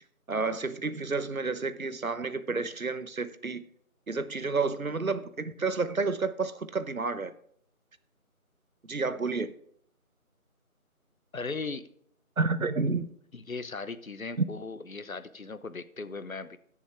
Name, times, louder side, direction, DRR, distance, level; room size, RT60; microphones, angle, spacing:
voice 1, 0.3-3.6 4.1-7.3 8.9-9.5 12.4-13.1 14.4-14.5, right 4 dB, 70° right, 1.0 m, -30 dB
voice 2, 11.3-11.9 13.3-16.6, left 4 dB, 70° left, 1.0 m, -38 dB
15.5 x 7.2 x 3.5 m
figure-of-eight pair, 170°, 43 cm